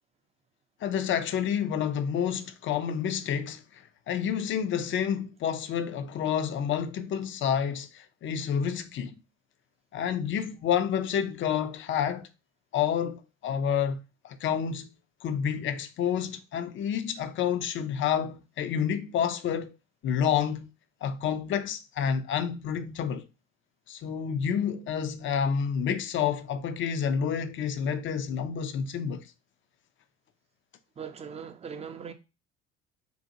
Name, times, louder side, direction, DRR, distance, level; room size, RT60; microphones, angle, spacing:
voice 1, 0.8-3.6 4.1-9.2 9.9-12.3 12.7-14.9 15.2-19.7 20.0-20.7 21.0-23.3 23.9-29.2, left 8 dB, 40° left, 0.4 m, -29 dB
voice 2, 31.0-32.1, right 7 dB, 20° right, 0.4 m, -40 dB
2.6 x 2.4 x 2.7 m
hypercardioid pair, 65°, 30 cm